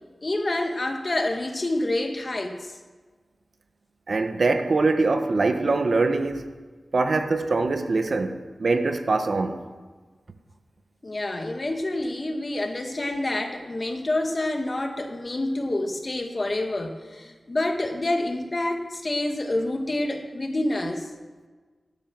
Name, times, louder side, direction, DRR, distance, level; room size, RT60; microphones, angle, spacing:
voice 1, 0.2-2.8 11.0-21.1, left 1 dB, 40° left, 2.1 m, -27 dB
voice 2, 4.1-6.5 6.9-9.6, right 3 dB, 60° right, 1.4 m, -23 dB
19.0 x 12.0 x 6.2 m
wide cardioid pair, 85°, 0 cm